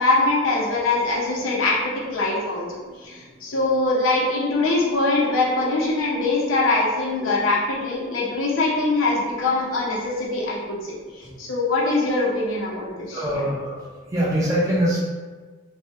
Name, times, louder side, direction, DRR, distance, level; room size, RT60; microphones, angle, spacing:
voice 1, 0.0-2.7 3.0-10.9 11.4-13.4, left 2 dB, 85° left, -4 dB, 0.7 m, -22 dB
voice 2, 13.1-13.8 14.1-15.0, right 1 dB, 15° right, -7 dB, 0.4 m, -23 dB
3.3 x 2.1 x 2.6 m, 1.4 s
head